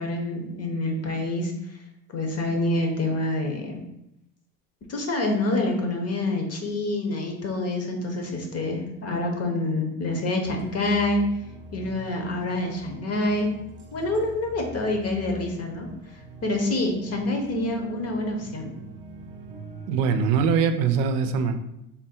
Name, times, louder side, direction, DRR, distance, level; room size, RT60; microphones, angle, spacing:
voice 1, 0.0-1.5 2.1-3.8 4.9-11.3 11.7-13.5 13.9-15.9 16.4-18.7, left 2 dB, 35° left, 3 dB, 0.9 m, -27 dB
sound 1, 10.4-20.3, right 3 dB, 25° right, 0.7 m, -42 dB
voice 2, 19.9-21.5, right 6 dB, 75° right, 8 dB, 0.5 m, -22 dB
3.6 x 2.2 x 4.3 m, 0.84 s
supercardioid pair, 85°, 42 cm